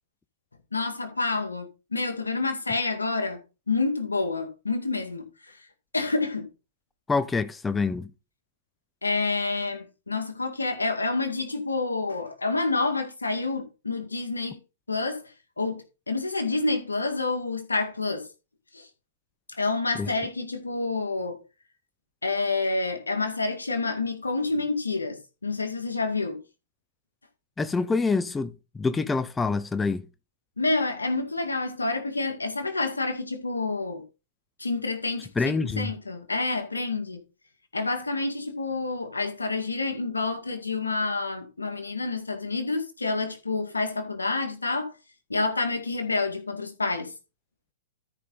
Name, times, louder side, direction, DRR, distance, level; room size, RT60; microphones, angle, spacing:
voice 1, 0.7-5.6 5.9-6.5 9.0-14.6 14.9-15.2 15.6-18.3 18.7-18.9 19.5-21.4 22.2-26.4 30.6-34.0 34.6-37.2 37.7-44.9 45.3-47.1, left 3 dB, 85° left, 2.2 m, -28 dB
voice 2, 7.1-8.1 20.0-20.1 27.6-30.1 35.4-35.9, left 4 dB, 10° left, 0.6 m, -26 dB
13.0 x 5.3 x 3.9 m
figure-of-eight pair, 110°, 0 cm